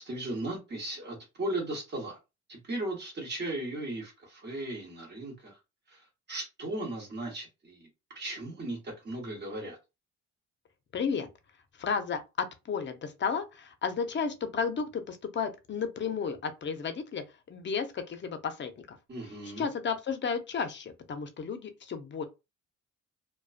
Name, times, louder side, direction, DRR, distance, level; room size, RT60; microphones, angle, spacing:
voice 1, 0.0-2.2 2.5-5.5 5.9-6.0 6.3-7.9 8.1-9.8 19.1-19.7, right 1 dB, 35° right, 1.1 m, -36 dB
voice 2, 10.9-11.3 11.8-19.0 19.4-22.2, left 6 dB, 40° left, 0.6 m, -33 dB
2.3 x 2.2 x 2.4 m
cardioid pair, 90°, 30 cm